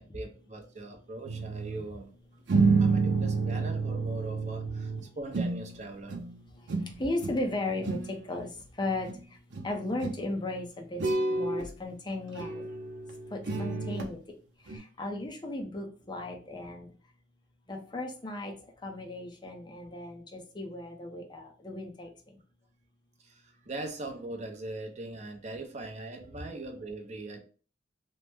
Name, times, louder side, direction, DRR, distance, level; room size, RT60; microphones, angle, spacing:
voice 1, 0.0-2.1 2.8-6.2 23.2-27.4, right 2 dB, 40° right, 0.6 m, -41 dB
sound 1, 1.2-1.9 2.5-5.8 6.1-6.4 6.7-7.5 7.7-8.2 9.1-9.2 9.5-9.7 10.0-10.3 11.0-11.7 12.3-14.1 14.7-14.8, right 4 dB, 85° right, 0.6 m, -29 dB
voice 2, 7.0-8.5 8.8-9.1 9.6-11.0 11.3-12.6 13.3-14.2 15.0-16.9 17.7-18.5 18.8-22.1, left 2 dB, 25° left, 0.6 m, -35 dB
3.0 x 2.1 x 3.3 m
head